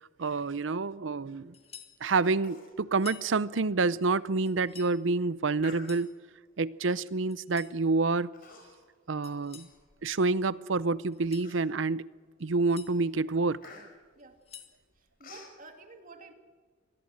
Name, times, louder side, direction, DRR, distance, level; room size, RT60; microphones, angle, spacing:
voice 1, 0.2-1.5 2.0-6.1 6.6-8.3 9.1-9.7 10.0-12.1 12.4-13.6, right 3 dB, 80° right, 18 dB, 0.7 m, -28 dB
sound 1, 1.5-2.0 2.9-3.3 4.5-5.0 5.6-6.1 7.3-7.8 9.2-9.8 11.1-11.5 12.4-12.9 14.2-14.8, left 8 dB, 35° left, 2.1 m, -50 dB
Human voice, 2.4-2.8 3.1-3.2 3.7-3.8 4.4-4.6 5.6-6.3 7.1-7.3 8.3-8.9 9.3-10.3 10.8-10.9 11.4-12.0 12.5-12.7 13.0-15.6, left 3 dB, 50° left, 5.4 m, -52 dB
voice 2, 15.0-16.3, right 3 dB, 45° right, 5 dB, 2.5 m, -51 dB
25.0 x 19.0 x 7.7 m, 1.5 s
head